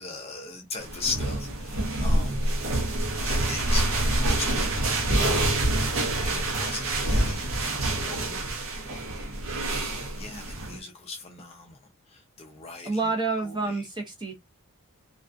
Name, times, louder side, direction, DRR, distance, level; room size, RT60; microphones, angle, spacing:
voice 1, 0.0-2.4 3.1-5.0 6.2-7.5 7.8-8.5 10.2-11.8 12.1-13.1 13.4-13.8, left 4 dB, 25° left, 0.4 m, -38 dB
sound 1, 0.8-10.8, right 1 dB, 65° right, 0.7 m, -26 dB
voice 2, 12.8-14.3, right 3 dB, 20° right, 0.7 m, -28 dB
2.3 x 2.3 x 2.4 m
head